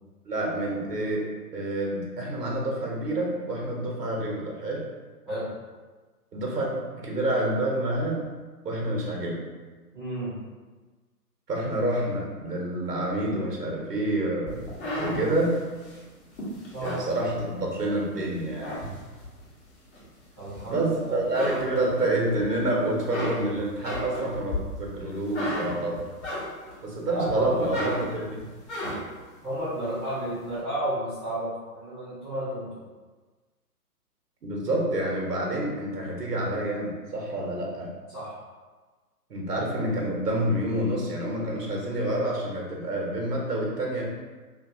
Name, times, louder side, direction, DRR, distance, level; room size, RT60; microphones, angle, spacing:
voice 1, 0.2-1.3 1.5-4.8 6.3-8.2 8.6-9.4 11.5-14.6 15.0-15.6 16.8-18.7 20.7-26.1 26.8-28.5 34.4-37.9 39.3-44.0, right 1 dB, 85° right, -1 dB, 0.9 m, -28 dB
voice 2, 9.9-10.3 16.7-17.0 20.4-21.2 27.1-27.7 29.4-32.7 38.1-38.3, right 1 dB, ahead, -14 dB, 0.6 m, -32 dB
sound 1, 14.5-17.9 18.3-19.4 19.9-20.9 21.2-22.5 22.8-26.8 27.3-29.2, left 1 dB, 45° left, 1.2 m, -34 dB
2.8 x 2.6 x 2.5 m, 1.3 s
figure-of-eight pair, 135°, 47 cm